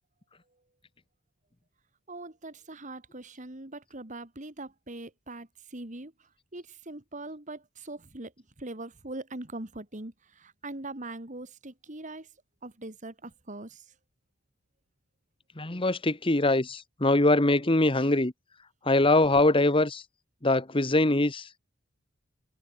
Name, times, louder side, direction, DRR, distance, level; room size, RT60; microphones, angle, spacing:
voice 1, 2.1-12.3 12.6-13.9, right 2 dB, 35° right, 2.3 m, -42 dB
voice 2, 15.6-18.3 18.9-20.0 20.4-21.6, left 2 dB, 25° left, 1.3 m, -23 dB
head